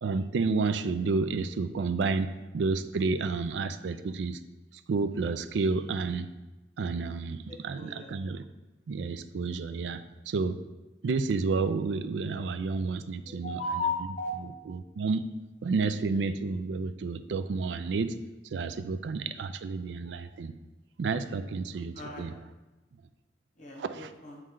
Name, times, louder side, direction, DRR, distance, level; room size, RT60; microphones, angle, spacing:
voice 1, 0.0-2.3 2.5-4.4 4.9-6.3 6.8-8.4 8.9-10.6 11.0-13.6 14.4-15.2 15.6-18.1 18.5-20.5 21.0-22.3 23.8-24.1, right 4 dB, 75° right, 11 dB, 0.4 m, -30 dB
voice 2, 7.5-8.1 13.3-14.3 21.9-22.2 23.6-24.4, left 2 dB, 45° left, -1 dB, 1.3 m, -35 dB
8.7 x 3.2 x 3.7 m, 1.1 s
head